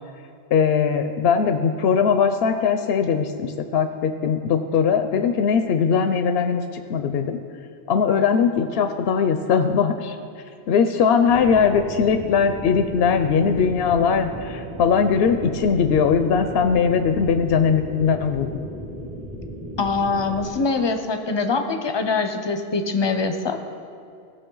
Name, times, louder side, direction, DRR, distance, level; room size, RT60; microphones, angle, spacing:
voice 1, 0.5-7.4 7.9-10.2 10.7-18.5, left 6 dB, 70° left, 8 dB, 0.8 m, -20 dB
sound 1, 11.3-20.5, equal, 35° right, 1.4 m, -35 dB
voice 2, 19.8-23.6, left 4 dB, 30° left, 7 dB, 0.6 m, -23 dB
17.0 x 6.4 x 3.8 m, 2.4 s
omnidirectional pair, 1.1 m